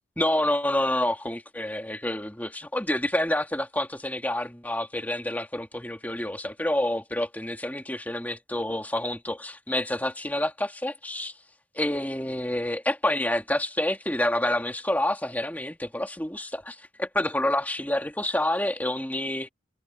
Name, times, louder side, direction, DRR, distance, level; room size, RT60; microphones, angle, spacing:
voice 1, 0.2-11.3 11.7-19.5, left 1 dB, 10° left, 2.4 m, -28 dB
head